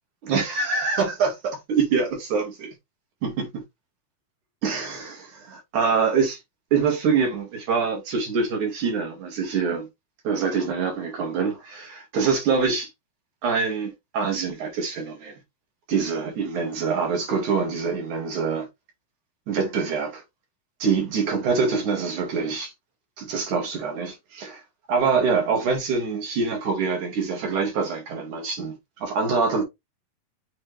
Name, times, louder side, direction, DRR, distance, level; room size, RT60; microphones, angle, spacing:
voice 1, 0.2-2.7 3.2-3.6 4.6-6.4 6.7-9.9 10.2-12.9 13.4-15.4 15.9-18.7 19.5-20.2 20.8-22.7 23.2-24.6 24.9-29.6, right 5 dB, 65° right, 3.4 m, -25 dB
7.2 x 4.3 x 3.3 m
omnidirectional pair, 3.9 m